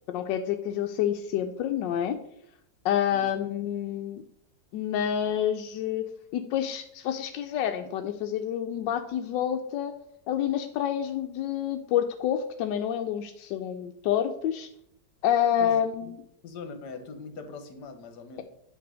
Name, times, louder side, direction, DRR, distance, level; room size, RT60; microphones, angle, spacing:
voice 1, 0.1-2.2 2.8-4.2 4.7-6.0 6.3-9.9 10.3-14.7 15.2-16.2, left 10 dB, 85° left, 6 dB, 1.3 m, -28 dB
voice 2, 3.1-3.4 15.6-16.1 16.4-18.4, left 4 dB, 70° left, 7 dB, 1.6 m, -42 dB
8.7 x 3.3 x 6.1 m, 0.74 s
omnidirectional pair, 1.9 m